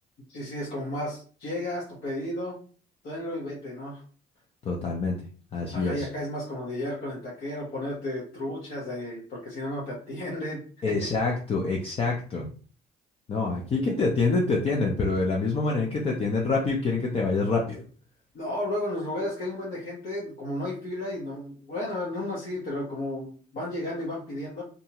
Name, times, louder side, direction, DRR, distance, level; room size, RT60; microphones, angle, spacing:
voice 1, 0.3-2.6 3.0-4.0 5.7-11.1 13.8-14.0 18.3-24.6, left 1 dB, 60° left, -5 dB, 1.0 m, -33 dB
voice 2, 4.6-5.2 5.5-6.1 10.8-12.5 13.3-17.8, left 3 dB, 35° left, 0 dB, 0.5 m, -26 dB
2.6 x 2.3 x 2.8 m, 0.41 s
cardioid pair, 110°, 17 cm